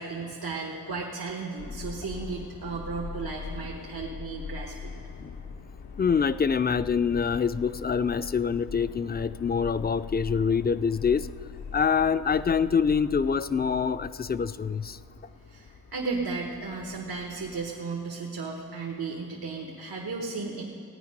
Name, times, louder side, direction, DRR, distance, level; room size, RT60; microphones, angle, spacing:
voice 1, 0.0-4.9 15.5-20.6, right 4 dB, 85° right, 0 dB, 1.2 m, -34 dB
Subway metro underground, 1.6-17.7, left 5 dB, 80° left, 0.9 m, -42 dB
voice 2, 6.0-11.3 11.7-15.0, left 6 dB, 25° left, 13 dB, 0.4 m, -25 dB
16.5 x 9.3 x 5.3 m, 2.3 s
cardioid pair, 45°, 37 cm